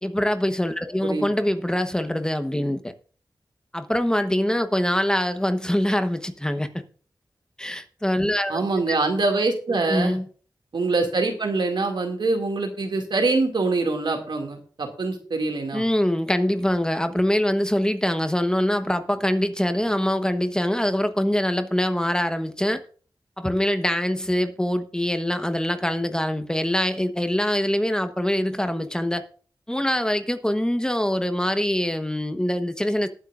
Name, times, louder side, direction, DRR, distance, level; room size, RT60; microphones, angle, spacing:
voice 1, 0.0-2.9 3.7-6.7 7.6-9.0 9.7-10.2 15.7-22.8 23.4-29.2 29.7-33.1, left 1 dB, 10° left, 1.1 m, -24 dB
voice 2, 8.5-10.2 10.7-15.8, right 3 dB, 85° right, 2.4 m, -24 dB
19.0 x 9.2 x 2.5 m
wide cardioid pair, 80°, 8 cm